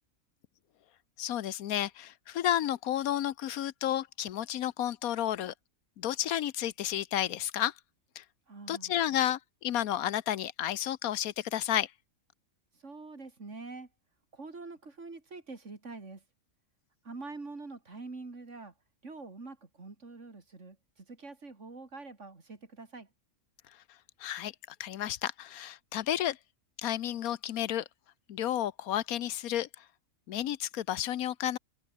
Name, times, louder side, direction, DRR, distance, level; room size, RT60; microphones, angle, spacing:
voice 1, 1.2-5.5 6.0-7.7 8.2-8.3 8.7-11.9 24.2-24.5 24.8-26.4 26.8-27.8 28.3-29.7 30.3-31.6, left 11 dB, 85° left, 1.2 m, -31 dB
voice 2, 8.5-8.9 12.8-13.9 14.3-16.2 17.0-18.7 19.0-23.1, right 3 dB, 55° right, 3.3 m, -45 dB
omnidirectional pair, 1.5 m